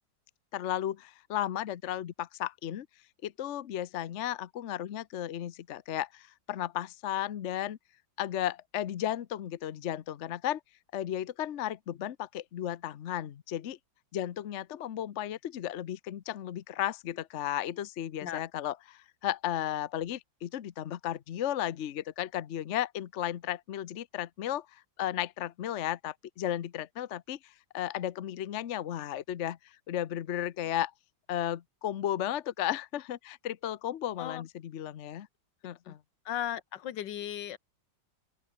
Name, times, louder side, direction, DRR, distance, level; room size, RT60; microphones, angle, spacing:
voice 1, 0.5-2.9 3.2-7.8 8.2-10.6 10.9-13.8 14.1-30.9 31.3-35.3 35.6-36.0, left 11 dB, 55° left, 0.8 m, -34 dB
voice 2, 36.2-37.6, left 10 dB, 75° left, 1.6 m, -36 dB
open air
omnidirectional pair, 2.0 m